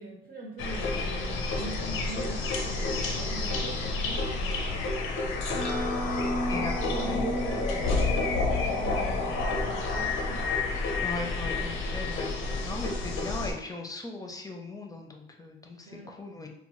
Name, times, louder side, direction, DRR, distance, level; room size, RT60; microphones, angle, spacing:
voice 1, 0.0-5.6 6.4-10.4 15.9-16.1, right 2 dB, 55° right, -4 dB, 0.8 m, -41 dB
sound 1, 0.6-13.5, left 3 dB, 90° left, 0.5 m, -29 dB
voice 2, 6.5-7.2 11.0-12.3 12.6-16.5, left 3 dB, 20° left, 2 dB, 0.5 m, -38 dB
3.0 x 2.0 x 3.0 m, 0.82 s
cardioid pair, 90°, 20 cm